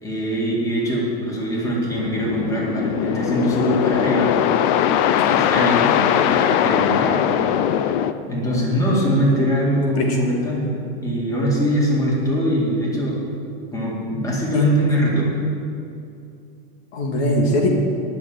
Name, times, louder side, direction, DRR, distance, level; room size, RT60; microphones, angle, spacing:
voice 1, 0.0-4.3 5.1-7.2 8.3-13.2 13.7-15.3, equal, 10° left, -4 dB, 2.2 m, -22 dB
sound 1, 1.9-8.1, left 10 dB, 50° left, 0.6 m, -20 dB
voice 2, 9.0-9.5 10.0-10.2 14.5-14.6 16.9-17.7, left 1 dB, 70° left, 1 dB, 2.1 m, -22 dB
10.5 x 6.2 x 8.9 m, 2.6 s
supercardioid pair, 145°, 33 cm